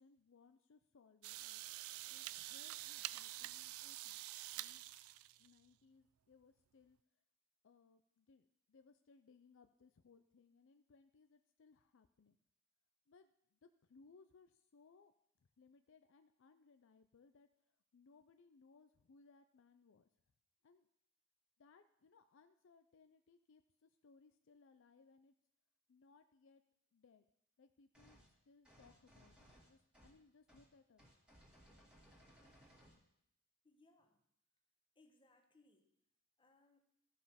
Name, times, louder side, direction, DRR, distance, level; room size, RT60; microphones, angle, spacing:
voice 1, 0.0-1.6 2.1-4.2 4.5-4.8 5.4-7.0 7.6-12.4 13.1-15.1 15.6-20.1 20.6-20.9 21.6-25.3 25.9-26.6 26.9-27.3 27.6-28.2 28.5-31.1, left 4 dB, 65° left, 9 dB, 0.5 m, -67 dB
sound 1, 1.2-5.6, right 16 dB, 85° right, 0.3 m, -47 dB
sound 2, 27.9-28.3 28.6-30.2 30.5-30.7 31.0-33.0, equal, 5° right, 2.0 m, -65 dB
voice 2, 33.6-34.2 34.9-35.9 36.4-36.8, left 2 dB, 25° left, 5 dB, 1.1 m, -70 dB
14.0 x 5.4 x 5.7 m, 0.76 s
head